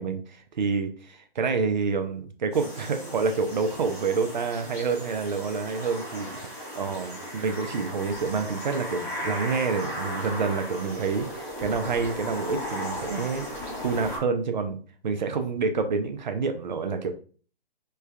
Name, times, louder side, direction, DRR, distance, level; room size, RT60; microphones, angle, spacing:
voice 1, 0.0-13.4 13.8-14.8 15.0-17.1, right 5 dB, 50° right, 7 dB, 0.5 m, -28 dB
sound 1, 2.5-14.2, equal, 10° left, 0.7 m, -36 dB
3.3 x 2.3 x 3.2 m, 0.41 s
figure-of-eight pair, 145°, 30 cm